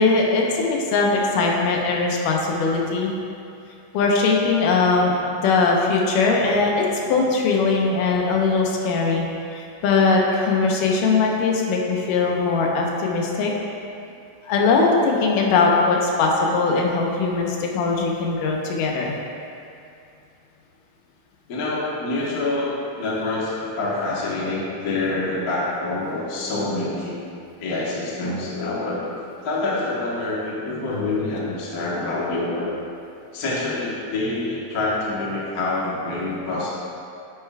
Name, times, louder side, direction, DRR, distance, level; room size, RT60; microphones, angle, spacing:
voice 1, 0.0-3.1 3.9-5.2 5.4-9.2 9.5-13.5 14.4-19.2, left 4 dB, 85° left, -1 dB, 2.5 m, -20 dB
voice 2, 21.5-27.2 27.6-29.0 29.4-32.7 33.3-36.7, left 2 dB, 60° left, -6 dB, 0.9 m, -26 dB
9.0 x 9.0 x 2.3 m, 2.6 s
omnidirectional pair, 3.7 m